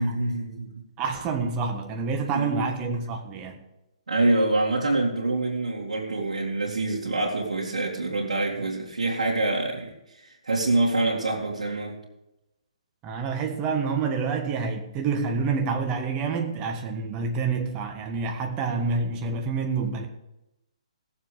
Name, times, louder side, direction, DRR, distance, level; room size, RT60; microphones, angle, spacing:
voice 1, 0.0-0.8 2.3-2.6 4.1-9.9 10.4-12.0, right 2 dB, 90° right, 2.3 m, -25 dB
voice 2, 1.0-3.6 13.0-20.1, right 4 dB, 20° right, 1.4 m, -28 dB
17.0 x 7.3 x 4.9 m
hypercardioid pair, 150°, 4 cm